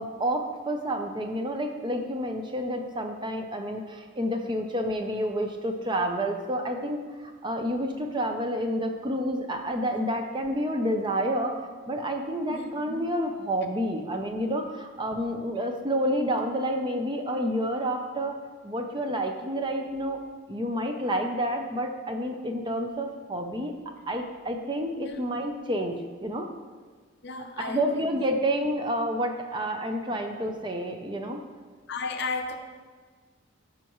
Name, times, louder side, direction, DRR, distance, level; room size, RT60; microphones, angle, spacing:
voice 1, 0.0-18.4 18.6-20.2 20.5-23.7 24.1-26.5 27.6-31.4, equal, 20° right, 4 dB, 0.5 m, -29 dB
voice 2, 27.2-28.1 30.1-30.2 31.9-32.6, left 4 dB, 50° left, 5 dB, 0.7 m, -34 dB
14.0 x 5.4 x 3.1 m, 1.5 s
head